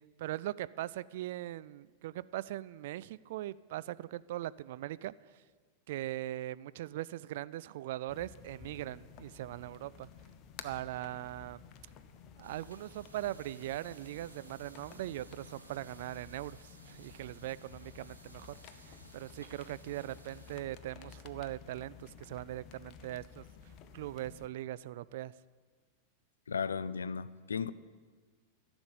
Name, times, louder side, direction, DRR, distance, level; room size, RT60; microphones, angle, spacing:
voice 1, 0.2-5.4 5.9-10.1 10.6-11.6 12.4-25.3, right 14 dB, 55° right, 0.3 m, -40 dB
sound 1, 8.1-24.5, left 7 dB, 35° left, 0.9 m, -53 dB
sound 2, 12.4-20.6, right 2 dB, 85° right, 1.5 m, -58 dB
voice 2, 26.5-27.7, left 6 dB, 70° left, 0.4 m, -35 dB
14.0 x 7.0 x 8.7 m
figure-of-eight pair, 90°, 0 cm